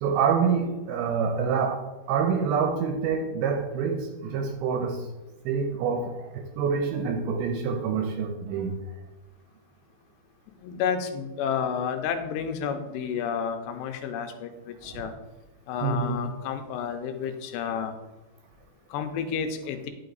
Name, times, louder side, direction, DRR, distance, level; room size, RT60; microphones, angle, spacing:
voice 1, 0.0-5.1 5.5-8.7 14.9-15.1 15.8-16.2, right 6 dB, 75° right, 2.4 m, -27 dB
voice 2, 10.6-15.1 15.7-17.9 18.9-19.9, left 7 dB, 85° left, 2.9 m, -31 dB
10.0 x 5.8 x 4.0 m
omnidirectional pair, 4.9 m